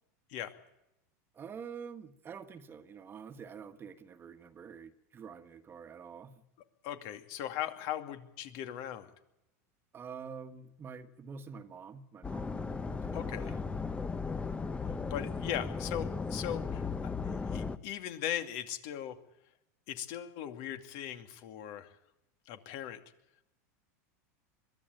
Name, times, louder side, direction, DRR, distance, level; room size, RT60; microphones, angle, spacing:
voice 1, 1.3-6.3 9.9-13.6, right 6 dB, 25° right, 10 dB, 1.5 m, -47 dB
voice 2, 6.8-9.1 13.1-13.5 14.9-19.2 19.9-22.0 22.5-23.0, left 11 dB, 60° left, 8 dB, 2.5 m, -39 dB
sound 1, 12.2-17.8, left 4 dB, 15° left, 1.0 m, -36 dB
22.5 x 14.0 x 9.2 m, 0.89 s
supercardioid pair, 125°, 9 cm